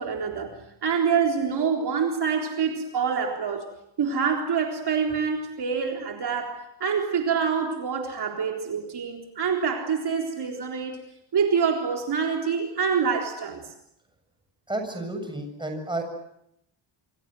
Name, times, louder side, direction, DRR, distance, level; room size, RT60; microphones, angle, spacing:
voice 1, 0.0-3.7 4.0-11.0 11.3-13.7, right 6 dB, 50° right, 2 dB, 4.0 m, -26 dB
voice 2, 14.7-16.0, right 2 dB, 10° right, 5 dB, 7.2 m, -31 dB
27.5 x 27.0 x 7.7 m, 0.77 s
cardioid pair, 155°, 49 cm